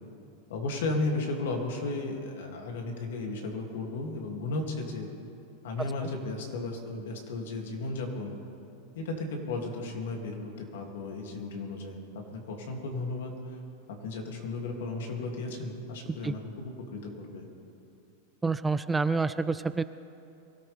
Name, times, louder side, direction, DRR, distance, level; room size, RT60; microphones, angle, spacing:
voice 1, 0.5-5.1 5.6-8.3 8.9-13.6 13.9-17.5, left 2 dB, 80° left, 1 dB, 2.7 m, -34 dB
voice 2, 18.4-19.8, right 4 dB, 10° right, 13 dB, 0.3 m, -28 dB
23.5 x 13.5 x 3.5 m, 2.8 s
supercardioid pair, 140°, 0 cm